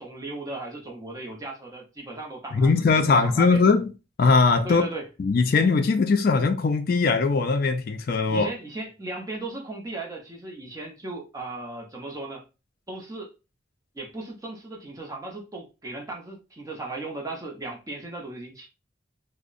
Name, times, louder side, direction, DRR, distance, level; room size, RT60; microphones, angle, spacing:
voice 1, 0.0-3.6 4.6-5.1 8.3-12.5 12.9-13.3 13.9-18.7, right 2 dB, 20° right, 0.5 m, -36 dB
voice 2, 2.5-3.9 4.2-4.8 5.2-8.5, left 4 dB, 50° left, 0.3 m, -20 dB
2.6 x 2.0 x 2.4 m
head